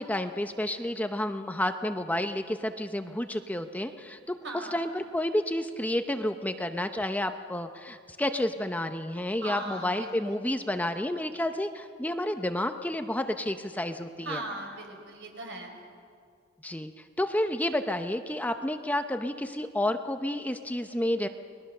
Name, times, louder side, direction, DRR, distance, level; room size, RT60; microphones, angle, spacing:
voice 1, 0.0-14.4 16.6-16.9 17.2-21.3, left 1 dB, 10° left, 7 dB, 0.7 m, -30 dB
voice 2, 4.4-4.8 9.4-10.4 14.2-15.8, right 2 dB, 65° right, 3 dB, 4.7 m, -38 dB
29.5 x 21.0 x 6.7 m, 2.3 s
head